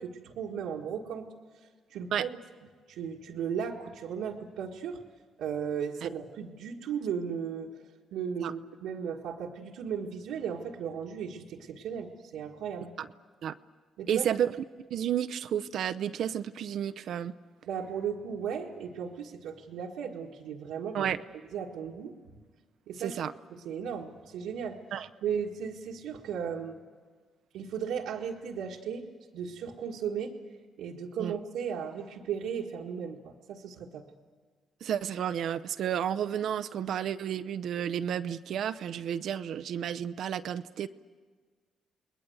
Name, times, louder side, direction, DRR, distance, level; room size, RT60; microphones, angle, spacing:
voice 1, 0.0-1.3 1.9-2.3 2.9-5.0 5.4-7.7 8.1-12.9 14.0-14.4 17.7-21.1 21.5-22.4 22.9-23.1 23.5-24.8 25.2-26.8 27.5-29.1 29.3-30.4 30.8-34.0, right 7 dB, 90° right, -3 dB, 1.7 m, -36 dB
voice 2, 14.1-14.5 14.9-17.3 20.9-21.2 23.0-23.3 24.9-25.1 31.2-31.3 34.8-40.9, right 9 dB, 70° right, 12 dB, 0.7 m, -31 dB
29.0 x 20.5 x 7.9 m, 1.5 s
cardioid pair, 90°, 0 cm